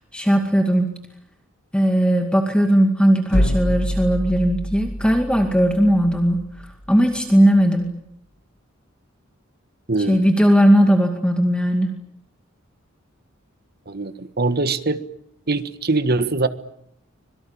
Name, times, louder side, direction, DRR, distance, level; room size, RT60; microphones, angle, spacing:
voice 1, 0.1-0.9 1.7-6.4 6.9-7.9 10.1-11.9, equal, 5° left, 4 dB, 2.2 m, -17 dB
sound 1, 3.3-7.2, equal, 60° left, 2.1 m, -26 dB
voice 2, 9.9-10.2 13.9-15.0 15.5-16.5, right 3 dB, 50° right, 11 dB, 1.6 m, -22 dB
25.5 x 23.0 x 8.9 m, 0.73 s
head